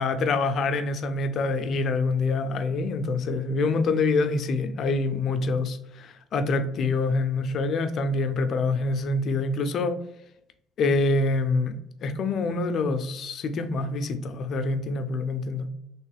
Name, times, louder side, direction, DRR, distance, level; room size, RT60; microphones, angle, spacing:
voice 1, 0.0-10.0 10.8-11.8 12.0-15.7, left 3 dB, 60° left, 9 dB, 0.4 m, -26 dB
2.9 x 2.9 x 3.2 m, 0.79 s
supercardioid pair, 70°, 0 cm